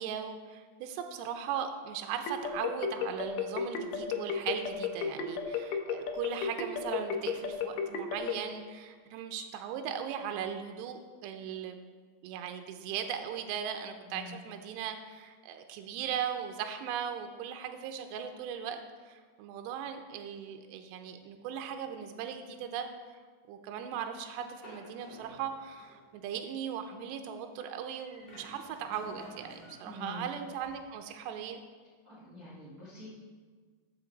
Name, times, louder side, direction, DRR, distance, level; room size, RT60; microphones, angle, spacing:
voice 1, 0.0-11.8 12.2-18.8 19.1-22.9 23.5-31.6, right 8 dB, 85° right, 6 dB, 2.8 m, -38 dB
sound 1, 2.3-8.4, left 7 dB, 80° left, 1.9 m, -33 dB
voice 2, 14.0-14.3 29.8-30.3 32.0-33.1, left 2 dB, 60° right, -7 dB, 0.9 m, -46 dB
sound 2, 24.6-26.1 28.0-30.8, equal, 20° left, 3.0 m, -52 dB
13.5 x 6.4 x 3.9 m, 1.5 s
omnidirectional pair, 4.9 m